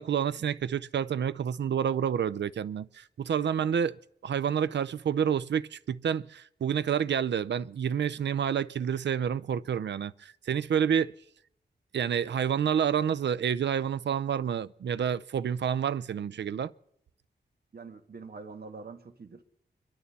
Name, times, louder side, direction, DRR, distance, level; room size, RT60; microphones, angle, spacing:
voice 1, 0.0-4.0 4.2-11.1 11.9-16.7, right 8 dB, 85° right, 0.5 m, -29 dB
voice 2, 17.7-19.4, right 4 dB, 60° right, 1.5 m, -45 dB
25.0 x 11.5 x 4.2 m
wide cardioid pair, 110°, 18 cm